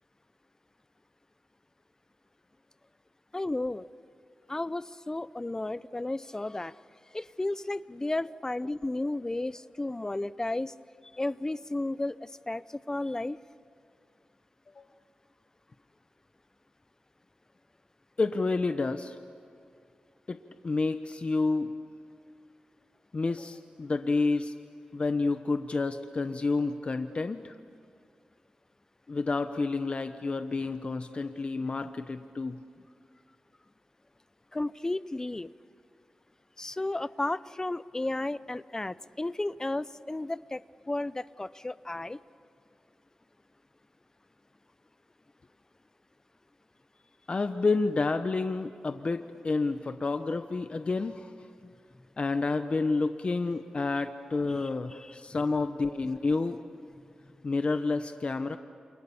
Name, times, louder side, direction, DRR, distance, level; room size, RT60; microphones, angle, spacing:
voice 1, 3.3-3.9 4.5-6.7 7.1-10.7 11.1-13.4 34.5-35.5 36.6-40.6 40.9-42.2 54.4-55.1, left 2 dB, 20° left, 17 dB, 0.7 m, -33 dB
voice 2, 18.2-19.2 20.3-21.7 23.1-24.5 24.9-27.6 29.1-32.6 47.3-51.3 52.2-56.6 57.4-58.6, left 3 dB, 45° left, 8 dB, 1.0 m, -29 dB
28.5 x 28.5 x 7.2 m, 2.3 s
cardioid pair, 70°, 3 cm